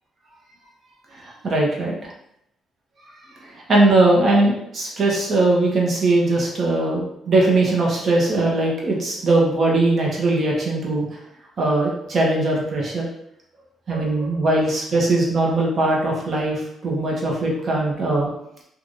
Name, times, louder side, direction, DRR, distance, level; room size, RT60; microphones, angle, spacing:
voice 1, 1.2-2.1 3.4-11.0 11.6-13.1 13.9-18.3, right 2 dB, 50° right, -2 dB, 1.0 m, -20 dB
3.2 x 2.5 x 2.6 m, 0.76 s
cardioid pair, 90°, 0 cm